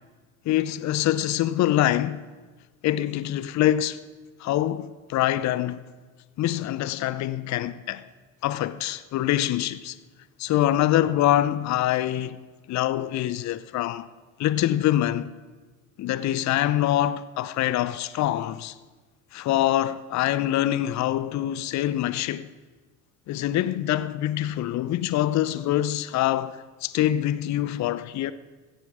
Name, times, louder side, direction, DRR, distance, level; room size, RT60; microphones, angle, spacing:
voice 1, 0.5-2.2 2.8-4.0 4.4-5.8 6.4-8.0 8.4-10.0 10.4-12.4 12.7-14.1 14.4-15.3 16.0-18.7 19.3-22.5 23.3-28.3, left 13 dB, 45° left, 0.7 m, -25 dB
16.0 x 14.5 x 4.9 m
hypercardioid pair, 65°, 41 cm